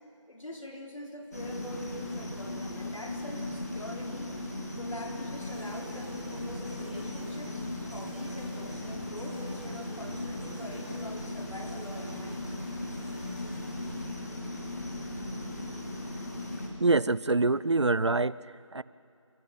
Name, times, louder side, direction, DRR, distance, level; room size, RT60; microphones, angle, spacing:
voice 1, 0.3-4.3 4.8-7.6 7.9-12.4, equal, 75° left, 1 dB, 4.2 m, -44 dB
sound 1, 1.3-16.7, left 2 dB, 30° left, 2.7 m, -37 dB
sound 2, 5.3-14.2, equal, 5° left, 1.4 m, -49 dB
voice 2, 16.8-18.8, right 3 dB, 60° right, 18 dB, 0.5 m, -26 dB
28.5 x 12.5 x 9.6 m, 2.5 s
figure-of-eight pair, 175°, 16 cm